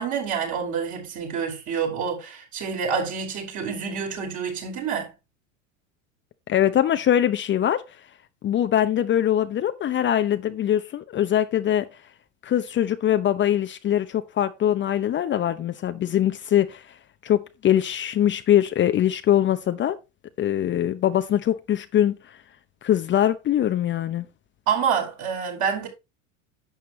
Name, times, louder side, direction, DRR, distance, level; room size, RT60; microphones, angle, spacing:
voice 1, 0.0-5.1 24.7-25.9, right 6 dB, 45° right, 5.3 m, -27 dB
voice 2, 6.5-7.8 8.4-11.9 12.4-16.8 17.2-20.0 20.4-22.2 22.8-24.2, left 11 dB, 30° left, 0.8 m, -22 dB
11.5 x 8.0 x 3.2 m
hypercardioid pair, 85°, 40 cm